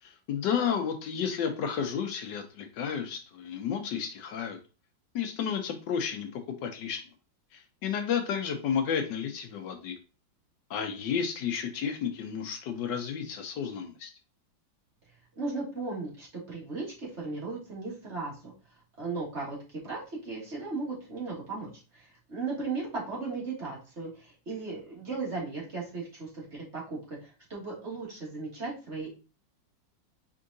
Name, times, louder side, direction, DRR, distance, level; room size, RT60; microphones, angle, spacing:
voice 1, 0.0-4.6 5.1-7.0 7.5-10.0 10.7-14.1, left 7 dB, 75° left, 6 dB, 1.2 m, -32 dB
voice 2, 15.4-18.5 19.0-29.1, right 3 dB, 40° right, -5 dB, 1.8 m, -36 dB
4.5 x 3.7 x 2.5 m, 0.33 s
omnidirectional pair, 2.0 m